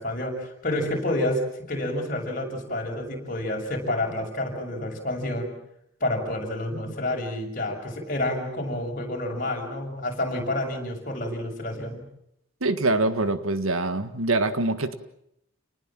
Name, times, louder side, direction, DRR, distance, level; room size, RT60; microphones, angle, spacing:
voice 1, 0.0-5.5 6.0-12.0, left 1 dB, 40° left, 1 dB, 6.7 m, -29 dB
voice 2, 12.6-14.9, right 2 dB, 70° right, 11 dB, 1.7 m, -24 dB
29.5 x 20.0 x 7.6 m, 0.77 s
head